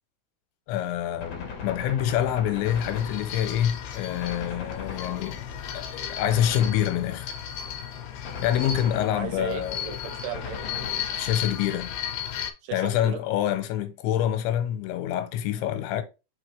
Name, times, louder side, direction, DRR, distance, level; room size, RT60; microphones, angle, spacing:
voice 1, 0.7-5.4 5.7-7.3 8.4-9.8 11.2-12.0 12.7-16.0, left 11 dB, 90° left, 3.0 m, -26 dB
Gunshot gunfire, 1.2-3.7 4.2-5.6 6.3-7.3 8.2-9.6 10.3-11.6, left 5 dB, 55° left, 1.9 m, -39 dB
sound 1, 2.6-12.5, left 8 dB, 75° left, 2.4 m, -35 dB
voice 2, 9.1-10.9 12.6-13.2, right 7 dB, 75° right, 2.5 m, -36 dB
6.5 x 4.8 x 3.2 m
omnidirectional pair, 5.3 m